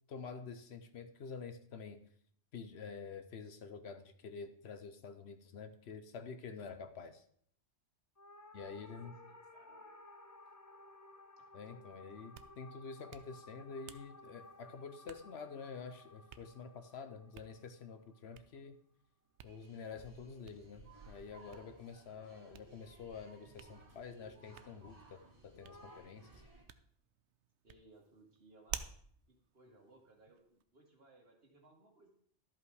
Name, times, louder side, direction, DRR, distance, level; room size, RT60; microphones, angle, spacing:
voice 1, 0.1-2.0 2.5-7.2 8.5-9.1 11.5-18.8 19.4-26.4, left 5 dB, 65° left, 10 dB, 0.9 m, -48 dB
sound 1, 8.2-18.7 25.6-26.0, left 2 dB, 25° left, 0.5 m, -57 dB
voice 2, 8.8-9.9 27.6-28.8 29.3-32.2, right 2 dB, 55° right, 1 dB, 2.1 m, -63 dB
Hands, 12.1-30.6, right 9 dB, 70° right, 0.9 m, -55 dB
sound 2, 19.4-26.6, right 2 dB, 30° right, 2.2 m, -59 dB
12.0 x 5.5 x 4.7 m, 0.62 s
omnidirectional pair, 1.2 m